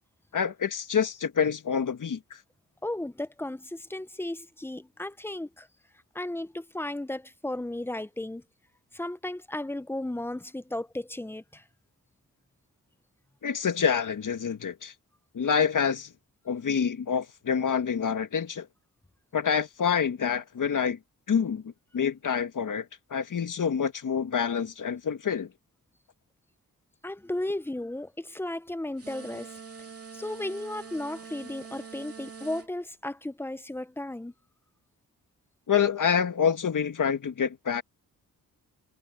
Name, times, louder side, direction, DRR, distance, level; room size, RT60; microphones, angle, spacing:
voice 1, 0.3-2.4 13.4-14.9 15.3-16.1 16.5-18.7 19.3-21.0 21.3-25.5 35.7-37.8, left 7 dB, 60° left, 1.9 m, -27 dB
voice 2, 2.8-5.7 6.1-8.4 8.9-11.6 27.0-29.5 30.1-34.3, left 1 dB, 5° left, 0.7 m, -35 dB
sound 1, 29.0-32.7, right 5 dB, 45° right, 2.8 m, -44 dB
cardioid pair, 75°, 35 cm